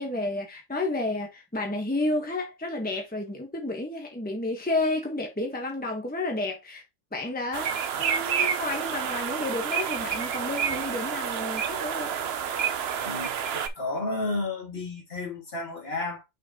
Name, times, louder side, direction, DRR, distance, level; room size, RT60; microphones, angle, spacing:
voice 1, 0.0-6.8 7.1-12.1, left 2 dB, 10° left, 1.2 m, -31 dB
sound 1, 7.5-13.7, right 7 dB, 60° right, 0.9 m, -29 dB
voice 2, 13.1-16.2, left 2 dB, 50° left, 2.5 m, -32 dB
6.3 x 5.0 x 3.0 m
omnidirectional pair, 1.3 m